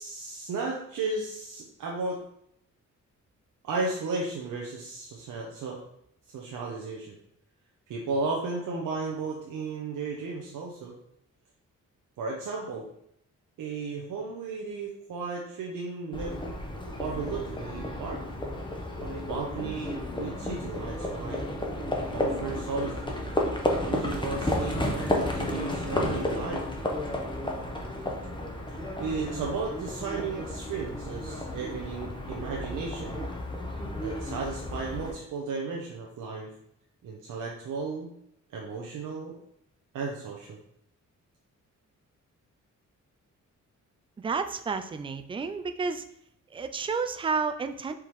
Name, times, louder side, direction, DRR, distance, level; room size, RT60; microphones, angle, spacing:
voice 1, 0.0-2.2 3.6-5.8 6.3-7.2 7.9-10.9 12.2-12.9 13.6-16.3 17.0-18.2 19.0-21.4 22.1-22.9 23.8-26.7 29.0-33.2 34.0-36.5 37.0-38.1 38.5-39.3 39.9-40.6, right 4 dB, 80° right, -1 dB, 0.8 m, -34 dB
Livestock farm animals working animals, 16.1-35.1, left 1 dB, 15° left, 0.8 m, -32 dB
voice 2, 44.2-46.0 46.5-47.9, right 5 dB, 20° right, 9 dB, 0.3 m, -31 dB
4.5 x 3.6 x 3.1 m, 0.73 s
cardioid pair, 100°, 31 cm